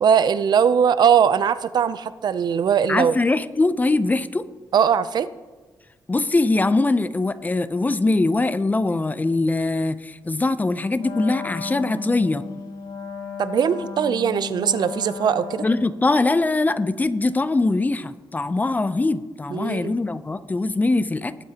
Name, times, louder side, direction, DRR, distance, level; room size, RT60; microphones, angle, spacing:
voice 1, 0.0-3.1 4.7-5.3 13.4-15.6 19.5-19.9, right 7 dB, 70° right, 15 dB, 0.5 m, -20 dB
voice 2, 2.9-4.4 6.1-12.4 15.6-21.4, left 2 dB, 20° left, 13 dB, 0.5 m, -22 dB
Wind instrument woodwind instrument, 11.0-16.1, left 5 dB, 75° left, 1.5 m, -34 dB
19.5 x 8.6 x 2.9 m, 1.4 s
cardioid pair, 100°, 8 cm